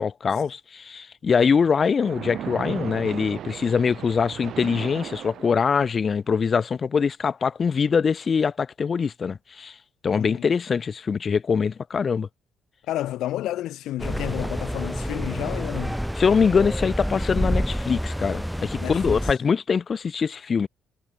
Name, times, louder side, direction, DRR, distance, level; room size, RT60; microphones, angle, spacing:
voice 1, 0.0-9.7 10.0-12.3 16.2-20.7, left 6 dB, 35° left, 1.0 m, -23 dB
Splash splatter, 2.0-6.0, right 10 dB, 60° right, 1.0 m, -36 dB
voice 2, 10.2-10.5 12.9-16.0 18.8-19.2, left 14 dB, 85° left, 1.8 m, -31 dB
sound 1, 14.0-19.3, equal, ahead, 1.4 m, -28 dB
cardioid pair, 140°, 0 cm